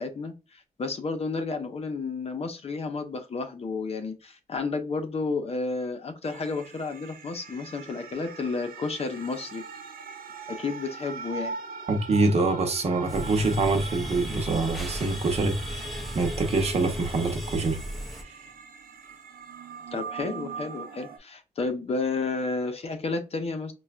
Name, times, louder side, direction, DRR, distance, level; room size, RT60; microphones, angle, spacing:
voice 1, 0.0-9.6 10.5-11.6 19.9-23.7, left 4 dB, 45° left, 0.7 m, -31 dB
sound 1, 6.2-21.2, right 5 dB, 80° right, 0.6 m, -42 dB
voice 2, 11.9-17.8 18.1-18.3, right 3 dB, 45° right, 0.8 m, -25 dB
sound 2, 13.1-18.2, equal, ahead, 0.5 m, -35 dB
4.3 x 2.3 x 2.4 m
wide cardioid pair, 140°, 15 cm